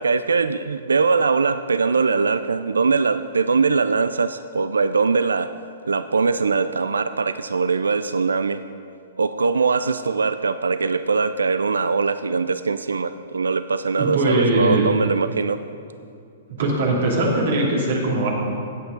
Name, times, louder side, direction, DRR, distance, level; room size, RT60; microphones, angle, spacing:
voice 1, 0.0-5.5 5.9-8.6 9.2-15.6, right 4 dB, 85° right, 12 dB, 0.3 m, -21 dB
voice 2, 14.0-14.9 16.6-18.3, right 2 dB, 65° right, -2 dB, 2.7 m, -20 dB
16.0 x 8.3 x 3.9 m, 2.5 s
hypercardioid pair, 120°, 0 cm